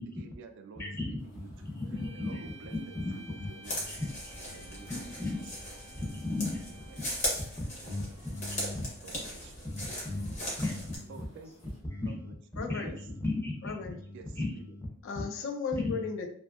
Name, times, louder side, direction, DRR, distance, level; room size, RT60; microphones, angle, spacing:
voice 1, 0.0-1.5 2.1-3.0 3.5-3.8 4.4-5.0 6.7-7.1 8.1-8.2 9.0-9.5 10.3-10.6 11.1-11.8 12.1-12.3 12.8-13.0 14.1-14.7, right 4 dB, 60° right, 0.3 m, -51 dB
voice 2, 0.8-2.4 2.9-3.6 3.9-4.5 4.9-5.3 5.9-7.1 7.7-8.8 9.6-10.3 10.6-11.2 11.8-12.3 12.7-14.9 15.7-16.1, left 2 dB, 10° left, 0.5 m, -36 dB
sound 1, 1.2-11.8, left 1 dB, 85° left, 0.8 m, -58 dB
sound 2, 1.9-7.7, right 2 dB, 75° right, 0.7 m, -54 dB
sound 3, 3.6-11.0, equal, 35° left, 0.8 m, -38 dB
voice 3, 12.6-13.0 13.6-14.0 15.0-16.3, left 4 dB, 60° left, 0.3 m, -35 dB
2.6 x 2.4 x 2.3 m
head